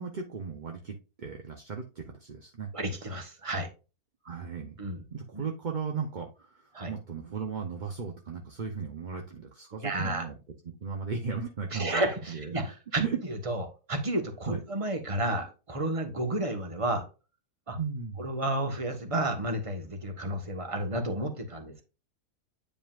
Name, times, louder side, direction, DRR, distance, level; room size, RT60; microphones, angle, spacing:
voice 1, 0.0-2.7 4.2-4.8 5.1-10.3 10.6-12.0 12.3-12.5 13.0-13.2 14.4-14.6 17.8-18.3, right 5 dB, 40° right, 3 dB, 0.7 m, -36 dB
voice 2, 2.7-3.7 4.8-5.0 5.3-5.4 6.7-6.9 9.8-10.3 11.7-13.0 13.3-17.0 17.7-17.8 18.2-21.8, right 1 dB, 20° right, 5 dB, 1.2 m, -31 dB
9.3 x 5.1 x 2.4 m, 0.31 s
omnidirectional pair, 1.7 m